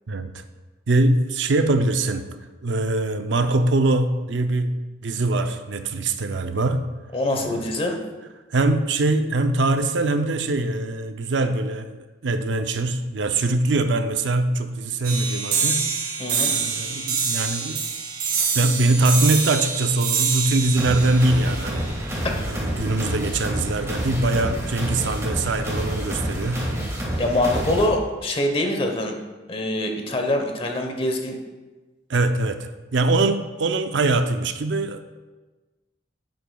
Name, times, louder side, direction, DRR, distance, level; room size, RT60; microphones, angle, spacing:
voice 1, 0.1-0.4 0.9-2.4 2.6-6.8 7.3-7.7 8.5-15.9 16.5-17.8 18.5-26.7 32.1-35.0, right 2 dB, 70° right, 8 dB, 0.5 m, -23 dB
voice 2, 7.1-8.0 16.2-16.5 27.2-29.2 29.5-31.4, left 1 dB, 30° left, 3 dB, 1.0 m, -24 dB
sound 1, 15.0-22.1, right 5 dB, 55° right, 1.7 m, -26 dB
sound 2, 20.8-27.9, equal, 15° right, 1.6 m, -28 dB
10.0 x 7.7 x 2.3 m, 1.2 s
head